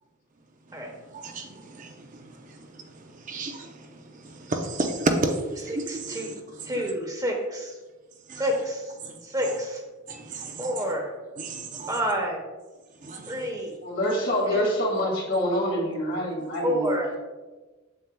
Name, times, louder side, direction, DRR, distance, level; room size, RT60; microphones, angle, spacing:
voice 1, 1.1-6.9 8.3-8.4 9.0-9.1 9.4-9.5 10.1-10.9 11.4-12.0 13.0-13.5, right 2 dB, 40° right, 4 dB, 0.6 m, -33 dB
voice 2, 5.9-6.3 6.7-7.7 8.4-8.8 9.3-9.8 10.6-11.1 11.9-12.4 13.3-13.7 14.5-14.7 16.6-17.1, equal, 20° right, 1 dB, 1.0 m, -28 dB
voice 3, 13.8-17.2, equal, 60° left, -2 dB, 2.2 m, -26 dB
7.6 x 7.3 x 2.3 m, 1.2 s
head